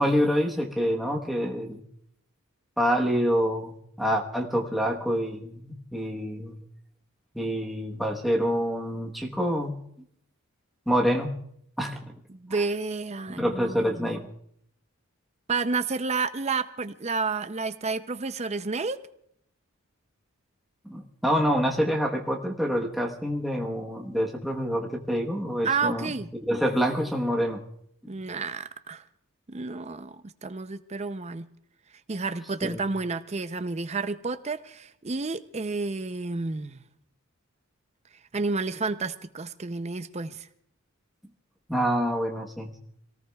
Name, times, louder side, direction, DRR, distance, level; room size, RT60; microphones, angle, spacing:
voice 1, 0.0-1.8 2.8-6.6 7.3-9.7 10.9-11.3 11.8-12.0 13.3-14.3 20.8-26.1 26.4-27.6 28.0-28.1 32.6-32.8 41.7-42.8, equal, ahead, -1 dB, 1.1 m, -27 dB
voice 2, 12.3-14.1 15.5-19.0 25.6-26.3 28.1-29.0 29.5-31.5 32.1-36.8 38.3-40.5, right 4 dB, 30° right, 11 dB, 0.5 m, -30 dB
26.0 x 18.5 x 2.3 m, 0.70 s
head